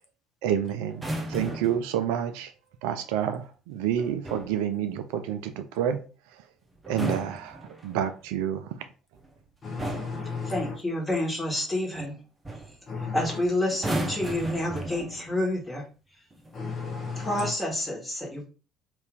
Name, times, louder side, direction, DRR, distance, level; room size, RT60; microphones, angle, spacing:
voice 1, 0.4-2.5 2.8-6.0 6.9-8.8, right 9 dB, 65° right, 8 dB, 0.3 m, -29 dB
sound 1, 0.9-1.9 4.0-4.6 6.8-8.1 9.2-9.4 9.8-10.3 12.0-12.1 12.4-12.8 13.7-15.4 16.3-16.6, right 1 dB, 20° right, 0.8 m, -35 dB
voice 2, 9.6-10.7 12.9-13.2 16.5-17.5, left 4 dB, 40° left, 3 dB, 0.7 m, -34 dB
voice 3, 10.4-12.2 13.1-15.8 17.2-18.5, left 1 dB, 15° left, -2 dB, 1.5 m, -29 dB
2.7 x 2.5 x 3.4 m, 0.35 s
figure-of-eight pair, 55°, 0 cm